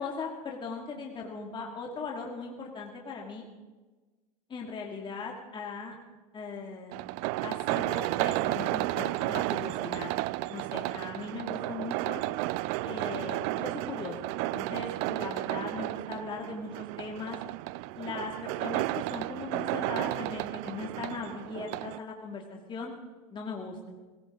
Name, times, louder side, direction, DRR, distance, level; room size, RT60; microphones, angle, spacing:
voice 1, 0.0-0.3 0.6-3.5 4.5-6.0 6.3-7.0 7.4-10.1 10.5-12.2 12.8-14.2 14.4-17.4 18.0-22.9 23.3-23.9, left 4 dB, 25° left, 0 dB, 2.5 m, -39 dB
sound 1, 6.9-22.0, right 19 dB, 55° right, 0.5 m, -33 dB
20.0 x 17.5 x 3.9 m, 1.3 s
supercardioid pair, 110°, 19 cm